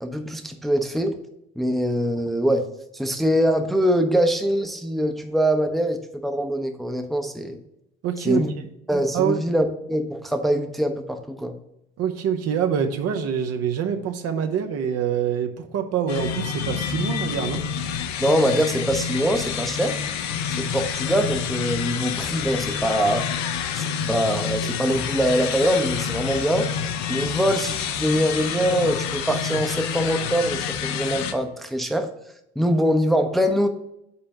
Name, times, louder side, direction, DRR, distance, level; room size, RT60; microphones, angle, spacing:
voice 1, 0.0-1.2 1.6-2.7 2.9-7.6 8.2-8.5 8.9-11.5 18.2-20.0 20.6-23.3 23.7-26.7 27.1-32.1 32.6-33.7, equal, ahead, 5 dB, 0.7 m, -23 dB
voice 2, 8.0-8.6 9.1-9.4 12.0-17.6, right 8 dB, 50° right, 6 dB, 0.7 m, -25 dB
sound 1, 16.1-31.3, left 7 dB, 55° left, 0.7 m, -28 dB
5.5 x 4.4 x 5.3 m, 0.81 s
hypercardioid pair, 55°, 33 cm